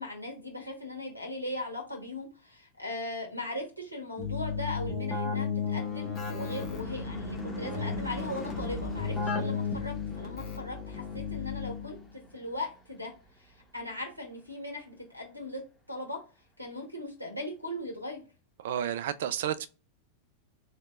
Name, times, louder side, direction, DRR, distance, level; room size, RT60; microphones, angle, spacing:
voice 1, 0.0-13.1 13.4-15.6 15.9-16.2 16.6-18.3, left 1 dB, 90° left, 1.4 m, -39 dB
Keyboard (musical), 4.2-12.0, left 6 dB, 25° left, 1.3 m, -34 dB
Car passing by / Truck / Engine, 5.0-13.6, right 3 dB, 5° left, 1.1 m, -44 dB
voice 2, 18.6-19.7, right 10 dB, 55° right, 0.4 m, -31 dB
3.3 x 2.7 x 3.5 m
figure-of-eight pair, 90°, 0 cm